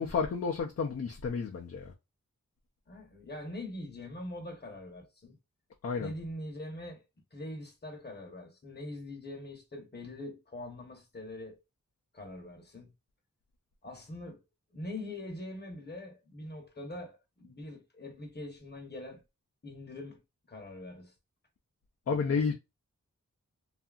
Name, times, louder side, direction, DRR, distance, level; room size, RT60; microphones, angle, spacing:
voice 1, 0.0-1.9 5.8-6.1 22.1-22.5, left 5 dB, 45° left, 0.5 m, -31 dB
voice 2, 2.9-5.4 6.0-7.0 7.3-11.6 12.1-12.9 13.8-14.4 14.7-19.2 19.6-20.2 20.5-21.1 22.1-22.5, left 1 dB, 30° left, 0.9 m, -43 dB
2.7 x 2.4 x 2.3 m
wide cardioid pair, 50°, 33 cm